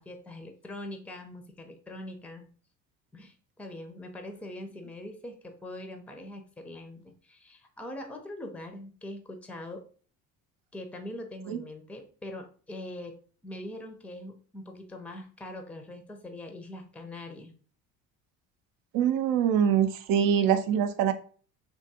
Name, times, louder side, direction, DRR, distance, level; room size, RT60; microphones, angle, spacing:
voice 1, 0.0-2.5 3.1-9.8 10.7-13.2 13.4-17.5, left 1 dB, 5° left, 5 dB, 0.5 m, -42 dB
voice 2, 18.9-21.1, right 8 dB, 65° right, 10 dB, 0.5 m, -24 dB
3.5 x 2.5 x 2.7 m, 0.42 s
supercardioid pair, 95°, 35 cm